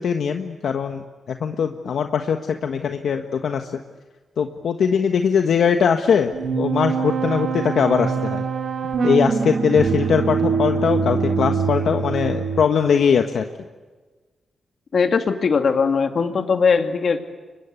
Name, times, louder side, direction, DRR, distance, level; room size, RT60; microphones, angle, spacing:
voice 1, 0.0-3.7 4.4-8.4 9.0-13.5, left 7 dB, 75° left, 5 dB, 1.4 m, -21 dB
sound 1, 6.3-12.7, right 5 dB, 65° right, 2.6 m, -23 dB
voice 2, 14.9-17.3, left 5 dB, 55° left, 6 dB, 2.5 m, -20 dB
30.0 x 24.0 x 8.3 m, 1.3 s
cardioid pair, 90°, 0 cm